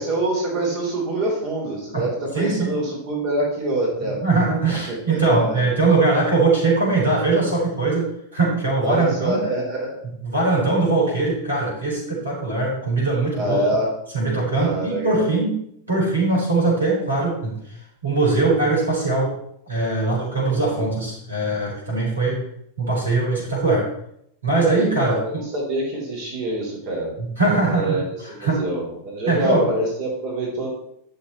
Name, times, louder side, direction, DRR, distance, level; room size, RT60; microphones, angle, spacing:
voice 1, 0.0-4.2 4.7-5.7 8.8-10.1 13.3-13.9 14.5-15.2 25.1-27.1 27.7-28.2 28.4-30.7, right 1 dB, 40° right, -2 dB, 3.6 m, -25 dB
voice 2, 2.3-2.8 4.2-9.4 10.2-13.6 14.1-15.6 15.9-17.8 18.0-19.3 19.7-22.4 22.8-23.9 24.4-25.4 27.2-28.6 29.3-29.6, right 3 dB, 80° right, -4 dB, 4.7 m, -21 dB
11.5 x 6.7 x 4.3 m, 0.74 s
figure-of-eight pair, 90°, 0 cm